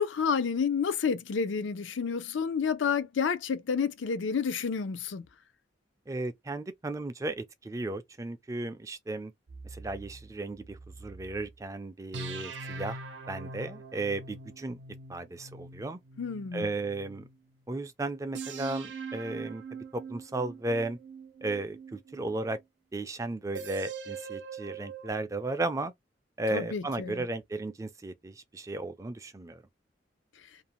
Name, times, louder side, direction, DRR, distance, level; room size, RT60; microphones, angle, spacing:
voice 1, 0.0-5.2 16.2-16.7 26.5-27.2, left 6 dB, 85° left, 0.5 m, -30 dB
voice 2, 6.1-9.3 9.7-13.0 13.3-14.8 15.1-16.0 16.5-17.3 17.7-19.6 19.9-21.0 21.4-22.6 22.9-25.9 26.4-29.6, right 2 dB, 15° right, 0.3 m, -35 dB
sound 1, 9.5-11.5 12.1-17.3 18.4-22.6 23.6-25.1, right 4 dB, 75° right, 0.6 m, -43 dB
2.5 x 2.1 x 2.9 m
head